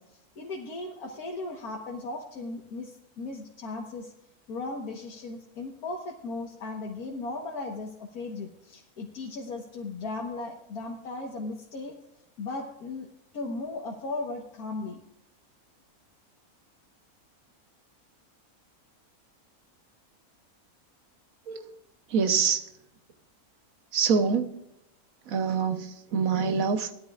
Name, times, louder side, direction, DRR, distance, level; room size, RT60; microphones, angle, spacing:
voice 1, 0.0-4.1 4.5-12.0 12.4-13.1 13.3-15.0, left 3 dB, 85° left, -1 dB, 1.8 m, -37 dB
voice 2, 22.1-22.7 23.9-24.5 25.3-26.9, right 6 dB, 70° right, 9 dB, 1.3 m, -25 dB
18.5 x 13.0 x 2.4 m, 0.83 s
omnidirectional pair, 1.5 m